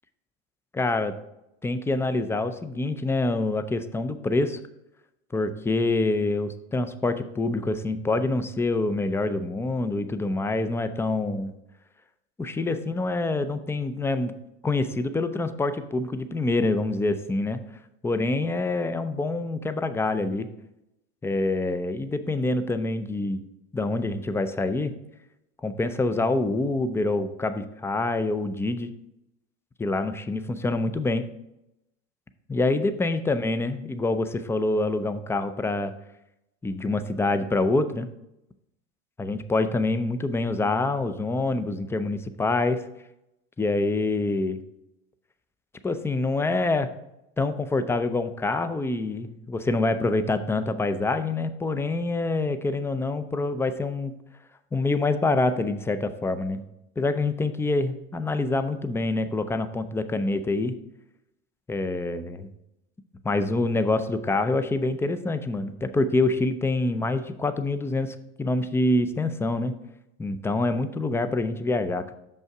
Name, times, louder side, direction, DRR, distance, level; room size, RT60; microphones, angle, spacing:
voice 1, 0.7-1.1 1.6-4.6 5.3-11.5 12.4-14.3 14.6-17.6 18.0-20.5 21.2-23.4 23.7-24.9 25.6-28.9 29.8-31.2 32.5-35.9 36.6-38.1 39.2-42.8 43.6-44.6 45.8-46.9 47.4-54.1 54.7-56.6 57.0-60.7 61.7-62.5 63.2-69.7 70.2-72.1, left 2 dB, 5° left, 11 dB, 0.4 m, -26 dB
6.3 x 5.5 x 4.7 m, 0.86 s
hypercardioid pair, 100°, 35 cm